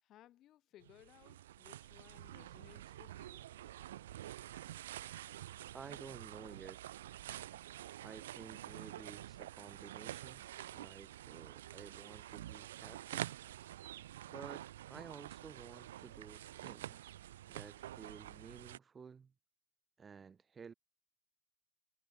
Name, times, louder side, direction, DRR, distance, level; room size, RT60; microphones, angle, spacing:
voice 1, 0.0-3.5, left 13 dB, 35° left, 6.6 m, -62 dB
sound 1, 0.8-18.8, right 13 dB, 60° right, 1.3 m, -48 dB
voice 2, 5.7-6.9 8.0-10.5 10.7-13.4 14.3-14.6 14.9-17.1 17.5-19.3 20.0-20.7, right 6 dB, 15° right, 2.2 m, -53 dB
figure-of-eight pair, 90°, 0 cm